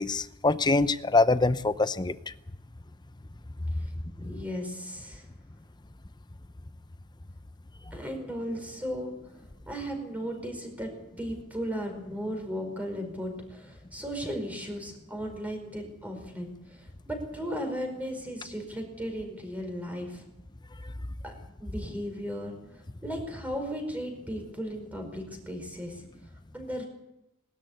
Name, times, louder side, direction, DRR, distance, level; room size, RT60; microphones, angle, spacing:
voice 1, 0.0-2.2 4.2-4.3, left 3 dB, 20° left, 13 dB, 0.7 m, -24 dB
voice 2, 4.2-5.3 7.9-9.4 9.7-10.9 11.2-20.2 21.2-21.3 21.6-26.0 26.5-26.8, equal, 5° right, 3 dB, 4.9 m, -36 dB
21.0 x 13.0 x 9.8 m, 0.89 s
head